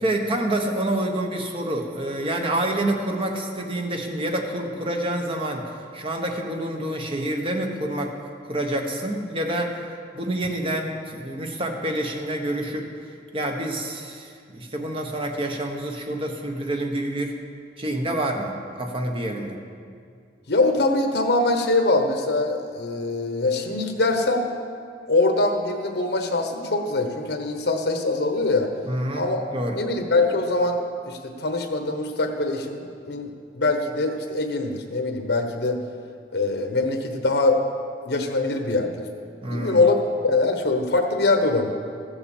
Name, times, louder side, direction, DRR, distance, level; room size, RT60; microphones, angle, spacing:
voice 1, 0.0-8.2 8.4-9.8 10.1-17.4 17.8-19.6 28.9-29.3 29.5-29.8 39.4-39.9, right 1 dB, 30° right, 2 dB, 1.2 m, -27 dB
voice 2, 20.5-24.5 25.1-28.7 29.2-29.4 29.8-35.8 36.3-37.6 38.0-38.9 39.5-39.9 40.2-41.7, left 2 dB, 70° left, 4 dB, 1.1 m, -23 dB
14.5 x 7.1 x 7.2 m, 2.2 s
head